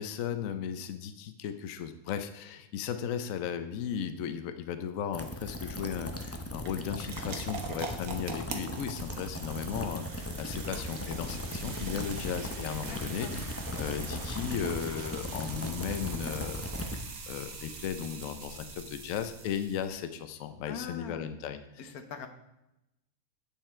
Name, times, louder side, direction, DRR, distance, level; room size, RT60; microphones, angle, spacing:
voice 1, 0.0-21.9, left 8 dB, 70° left, 9 dB, 1.0 m, -36 dB
sound 1, 5.1-17.0, left 1 dB, 20° left, 0.4 m, -38 dB
sound 2, 5.1-20.0, right 4 dB, 75° right, 1.5 m, -43 dB
voice 2, 12.7-13.4 20.7-21.3 21.8-22.3, left 7 dB, 90° left, 7 dB, 1.4 m, -42 dB
8.9 x 6.7 x 4.4 m, 0.90 s
omnidirectional pair, 1.5 m